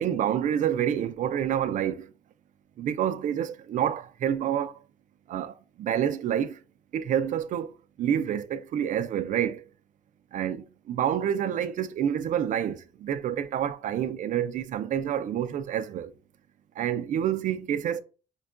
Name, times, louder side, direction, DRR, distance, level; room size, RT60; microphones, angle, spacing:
voice 1, 0.0-2.1 2.8-4.7 5.3-6.6 6.9-7.7 8.0-9.6 10.3-16.1 16.8-18.0, right 9 dB, 50° right, 0.4 m, -28 dB
5.3 x 2.2 x 2.4 m
cardioid pair, 110°, 17 cm